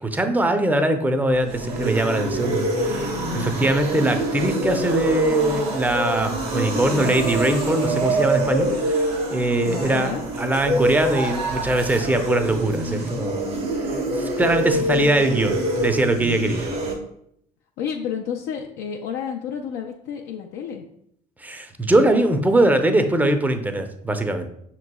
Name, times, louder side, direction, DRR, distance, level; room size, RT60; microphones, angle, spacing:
voice 1, 0.0-3.1 3.3-10.1 10.4-13.5 14.1-16.7 21.4-24.5, right 1 dB, 10° right, 7 dB, 0.5 m, -22 dB
sound 1, 1.3-16.9, right 1 dB, 80° right, 1.0 m, -25 dB
voice 2, 2.9-3.8 9.7-10.2 17.8-20.8, left 7 dB, 65° left, 1 dB, 0.4 m, -31 dB
5.9 x 3.0 x 2.2 m, 0.71 s
hypercardioid pair, 60°, 20 cm